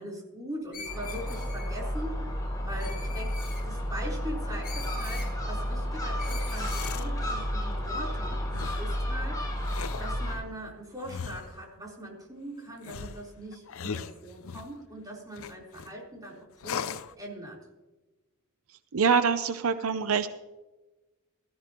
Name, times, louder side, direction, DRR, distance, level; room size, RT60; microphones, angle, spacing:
voice 1, 0.0-2.3 2.7-3.3 3.6-8.4 8.8-9.4 10.0-17.6, equal, 15° right, -2 dB, 3.8 m, -41 dB
Screech, 0.7-1.7 2.8-3.6 4.6-5.3 6.2-7.0, left 5 dB, 45° left, 4.2 m, -42 dB
Gull seagull, 0.9-10.4, equal, 15° left, 3.5 m, -32 dB
sound 1, 6.3-7.1 8.5-8.9 9.6-10.1 11.0-11.6 12.8-14.7 15.4-15.9 16.6-17.1, left 6 dB, 70° left, 0.6 m, -38 dB
voice 2, 18.9-20.3, right 6 dB, 70° right, 11 dB, 0.6 m, -24 dB
17.0 x 13.5 x 3.0 m, 1.1 s
head